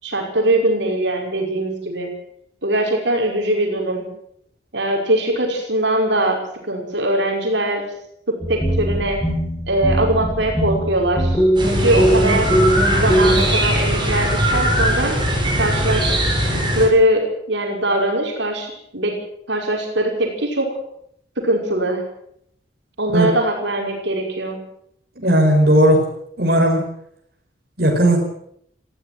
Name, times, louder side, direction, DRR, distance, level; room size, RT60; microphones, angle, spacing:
voice 1, 0.0-2.1 2.6-4.0 4.7-6.4 6.6-7.8 8.3-9.2 9.7-12.5 12.9-15.1 15.6-16.1 16.8-19.1 19.5-20.7 21.4-22.0 23.0-24.6, right 1 dB, 70° right, 1 dB, 5.6 m, -21 dB
sound 1, 8.4-13.5, right 1 dB, 15° left, 7.0 m, -20 dB
sound 2, 11.6-16.9, equal, 25° right, 7.7 m, -20 dB
voice 2, 25.2-26.0 26.4-26.8 27.8-28.2, right 1 dB, 55° right, 0 dB, 5.5 m, -15 dB
19.0 x 15.5 x 9.5 m, 0.71 s
head